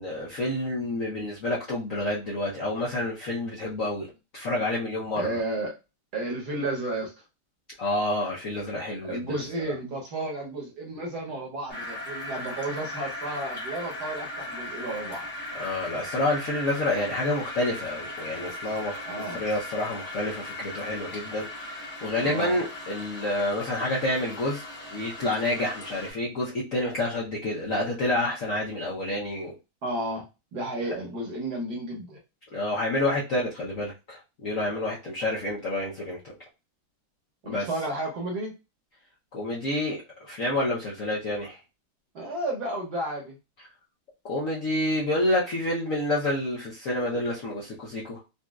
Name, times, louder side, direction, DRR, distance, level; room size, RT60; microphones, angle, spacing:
voice 1, 0.0-5.4 7.8-9.4 15.5-29.5 32.5-36.3 37.4-37.7 39.3-41.6 44.2-48.2, left 1 dB, 60° left, -5 dB, 0.9 m, -29 dB
voice 2, 5.1-5.7 6.1-7.2 9.0-15.3 19.0-19.4 22.2-22.6 29.8-30.2 30.5-32.2 37.4-38.5 42.1-43.4, right 2 dB, 55° right, 0 dB, 1.3 m, -32 dB
sound 1, 11.7-26.1, left 1 dB, 10° left, 0.4 m, -38 dB
4.1 x 2.4 x 2.3 m, 0.27 s
omnidirectional pair, 2.3 m